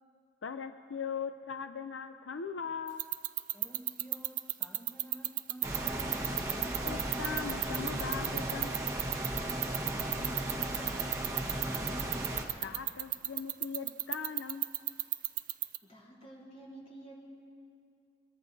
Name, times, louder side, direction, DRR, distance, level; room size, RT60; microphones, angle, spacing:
voice 1, 0.4-3.0 6.8-8.8 12.6-15.0, left 6 dB, 85° left, 9 dB, 0.5 m, -40 dB
sound 1, 2.9-15.8, right 16 dB, 45° right, 0.4 m, -31 dB
voice 2, 3.5-6.2 9.4-12.4, equal, 10° left, -3 dB, 1.1 m, -51 dB
sound 2, 5.6-12.4, right 1 dB, 15° right, 1.3 m, -36 dB
voice 3, 15.9-17.2, right 2 dB, 35° left, -4 dB, 3.6 m, -50 dB
23.5 x 22.0 x 2.7 m, 2.3 s
head